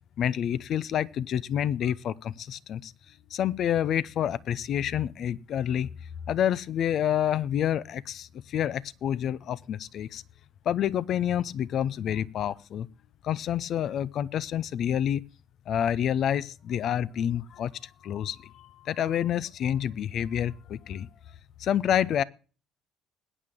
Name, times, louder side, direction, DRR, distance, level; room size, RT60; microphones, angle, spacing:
voice 1, 0.2-2.9 3.3-5.9 6.3-10.2 10.7-12.9 13.2-15.2 15.7-17.7 18.0-21.1 21.6-22.2, left 10 dB, 55° left, 0.6 m, -28 dB
21.0 x 9.1 x 3.7 m
hypercardioid pair, 55°, 0 cm